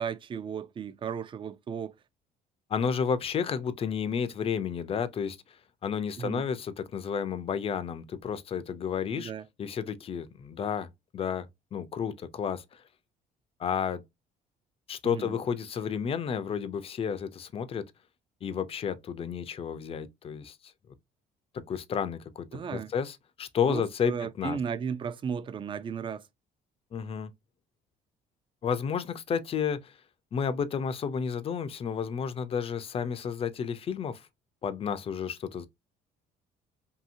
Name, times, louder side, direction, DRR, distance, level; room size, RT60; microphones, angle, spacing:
voice 1, 0.0-1.9 6.2-6.4 9.2-9.4 15.0-15.4 22.5-22.9 23.7-26.2, right 7 dB, 30° right, 0.3 m, -35 dB
voice 2, 2.7-5.4 5.8-9.3 9.6-12.8 13.6-14.0 14.9-17.8 18.4-20.6 21.5-24.6 26.9-27.3 28.6-29.9 30.3-34.3 34.6-35.7, left 7 dB, 35° left, 0.4 m, -31 dB
2.7 x 2.7 x 2.5 m
cardioid pair, 110°, 17 cm